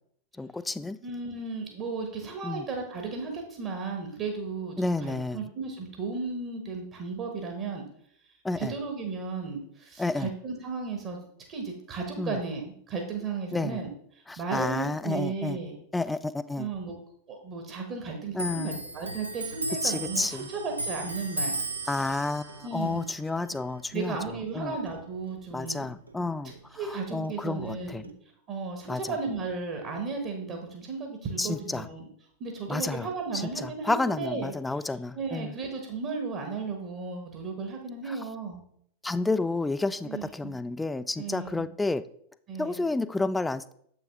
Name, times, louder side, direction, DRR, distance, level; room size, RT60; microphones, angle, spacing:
voice 1, 0.4-1.0 2.4-2.7 4.8-5.5 8.4-8.7 10.0-10.3 12.2-12.4 13.5-13.8 14.3-15.6 15.9-16.7 18.3-18.8 19.8-20.5 21.9-24.2 24.5-24.8 25.5-26.5 26.9-28.0 28.9-29.1 31.4-31.9 32.7-33.1 33.3-35.5 38.1-38.2 39.0-42.0 42.6-43.7, left 3 dB, 10° left, 14 dB, 0.3 m, -30 dB
voice 2, 1.0-7.8 8.5-13.9 14.1-15.8 16.6-17.0 17.3-21.5 22.6-23.0 23.9-25.8 26.8-28.1 28.5-32.1 32.4-34.5 35.1-38.6 40.0-40.5 41.2-41.7 42.5-42.8, right 4 dB, 35° right, 3 dB, 1.2 m, -35 dB
Clock, 18.3-25.4 25.7-27.0 27.3-28.1, right 2 dB, 80° right, 0.6 m, -36 dB
7.6 x 5.7 x 3.5 m, 0.68 s
figure-of-eight pair, 90°, 0 cm